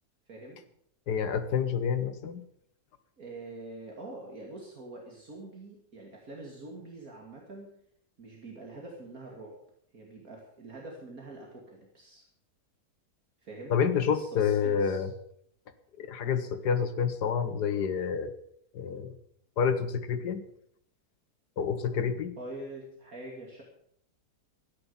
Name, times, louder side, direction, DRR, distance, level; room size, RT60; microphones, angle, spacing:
voice 1, 0.3-0.6 3.2-7.7 8.2-9.6 9.9-12.2 13.4-13.7 14.1-15.1 22.4-23.6, right 2 dB, 60° right, -1 dB, 2.8 m, -45 dB
voice 2, 1.1-2.4 13.7-15.1 16.0-18.3 18.7-19.2 19.6-20.4 21.6-22.3, left 7 dB, 85° left, 9 dB, 1.8 m, -28 dB
13.5 x 10.5 x 7.1 m, 0.68 s
omnidirectional pair, 1.7 m